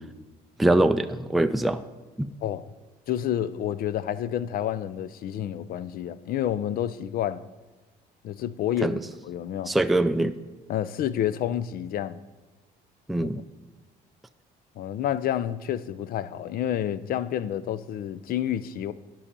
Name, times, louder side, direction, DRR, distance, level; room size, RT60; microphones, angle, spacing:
voice 1, 0.6-1.8 2.2-2.3 8.8-9.0 9.7-10.4 13.1-13.4, right 1 dB, ahead, 0.4 m, -23 dB
voice 2, 3.1-7.4 8.2-9.7 10.7-12.2 13.2-13.3 14.8-18.9, left 11 dB, 60° left, 0.5 m, -29 dB
10.0 x 5.6 x 6.7 m
cardioid pair, 110°, 17 cm